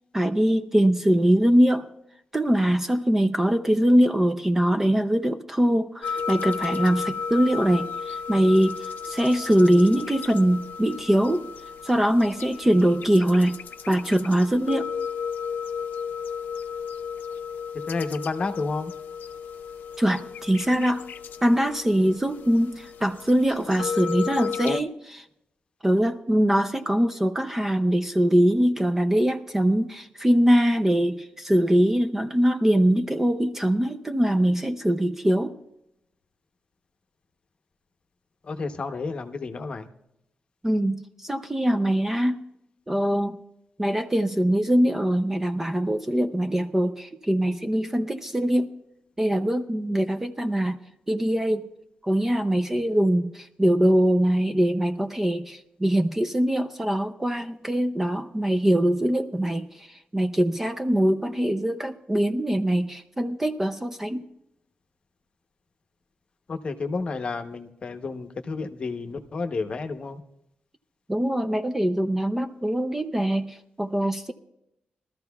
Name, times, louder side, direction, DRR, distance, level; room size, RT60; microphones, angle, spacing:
voice 1, 0.1-1.9 2.3-11.5 11.8-13.6 13.9-14.9 20.0-21.0 21.4-25.3 25.8-35.6 40.6-42.4 42.9-43.4 43.8-48.7 49.2-50.8 51.1-51.6 52.0-64.3 71.1-74.3, right 1 dB, 10° right, 7 dB, 0.5 m, -22 dB
sound 1, 6.0-24.8, left 6 dB, 75° left, 0.5 m, -34 dB
voice 2, 17.9-18.9 38.4-39.9 66.5-70.2, left 4 dB, 35° left, 7 dB, 0.9 m, -31 dB
21.5 x 13.5 x 2.3 m, 0.82 s
wide cardioid pair, 165°, 3 cm